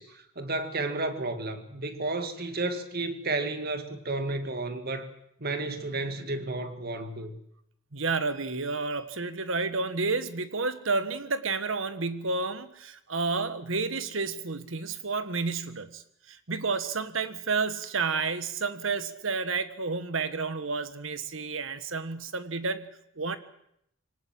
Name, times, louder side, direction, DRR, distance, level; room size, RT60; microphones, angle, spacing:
voice 1, 0.0-5.1 5.4-7.4, right 2 dB, 45° right, 8 dB, 2.1 m, -32 dB
voice 2, 7.9-23.4, right 4 dB, 65° right, 12 dB, 1.5 m, -31 dB
24.0 x 18.5 x 7.7 m, 0.74 s
head